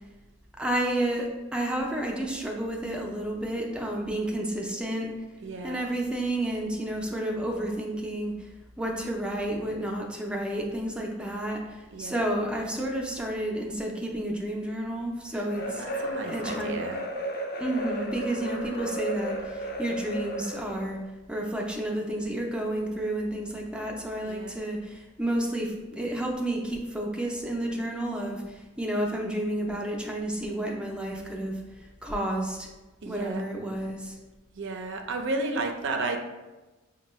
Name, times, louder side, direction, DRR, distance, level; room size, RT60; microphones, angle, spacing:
voice 1, 0.6-5.1 5.6-8.3 8.8-15.9 16.2-16.9 17.6-21.0 21.3-31.5 32.0-32.7 33.0-34.2, right 1 dB, 5° right, -1 dB, 0.4 m, -31 dB
voice 2, 5.4-5.8 11.9-12.2 15.4-17.0 24.2-24.6 33.0-33.4 34.5-36.2, right 3 dB, 65° right, 5 dB, 0.5 m, -33 dB
sound 1, 15.5-20.9, equal, 50° left, 0.5 m, -34 dB
5.3 x 2.2 x 3.0 m, 1.1 s
head